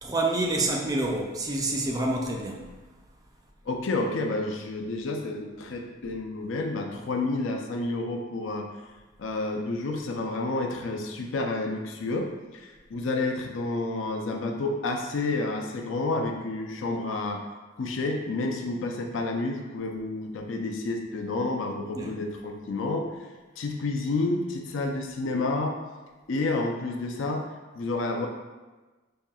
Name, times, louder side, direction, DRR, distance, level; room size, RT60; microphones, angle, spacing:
voice 1, 0.0-2.7 21.9-22.2, right 2 dB, 20° right, 1 dB, 0.3 m, -28 dB
voice 2, 3.7-8.7 9.2-17.4 17.8-23.1 23.6-25.8 26.3-27.5 27.7-28.3, left 2 dB, 65° left, 3 dB, 0.5 m, -30 dB
5.3 x 2.7 x 2.3 m, 1.2 s
head